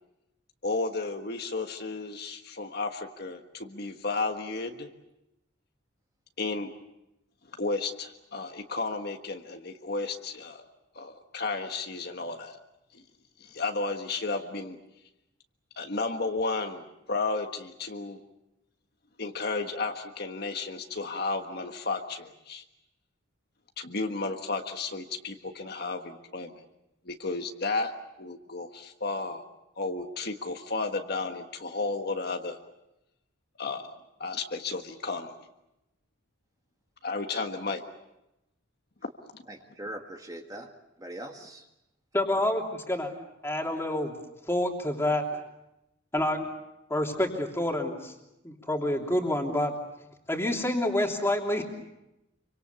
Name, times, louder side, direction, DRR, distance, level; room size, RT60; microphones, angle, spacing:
voice 1, 0.6-4.9 6.4-6.7 7.5-10.6 10.9-12.6 12.9-13.0 13.4-14.8 15.8-18.2 19.2-22.6 23.8-26.6 27.0-27.9 28.2-29.4 29.8-32.6 33.6-35.3 37.0-37.8 39.0-39.4, left 3 dB, 55° left, 5 dB, 1.5 m, -33 dB
voice 2, 39.5-40.7 41.0-41.6, right 1 dB, 20° right, 4 dB, 1.7 m, -41 dB
voice 3, 42.1-43.1 43.4-44.1 44.5-45.4 46.1-46.4 46.9-48.1 48.4-49.7 50.3-51.6, left 1 dB, 15° left, 2 dB, 3.1 m, -28 dB
26.5 x 25.0 x 6.9 m, 0.90 s
head